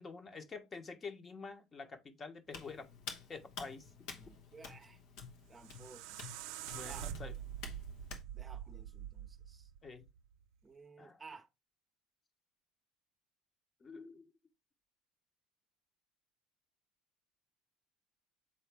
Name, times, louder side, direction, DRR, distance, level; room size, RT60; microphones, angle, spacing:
voice 1, 0.0-2.9 3.3-3.9 6.7-7.3 9.8-10.0 11.0-11.2 13.8-14.3, left 4 dB, 30° left, 1.2 m, -47 dB
Hands, 2.5-8.2, left 5 dB, 65° left, 1.1 m, -50 dB
voice 2, 4.1-5.0 5.5-6.2 6.8-7.1 8.3-9.7 10.6-11.5, right 4 dB, 20° right, 0.8 m, -55 dB
sound 1, 5.3-10.4, right 10 dB, 70° right, 0.5 m, -46 dB
6.9 x 4.1 x 3.4 m
hypercardioid pair, 75°, 0 cm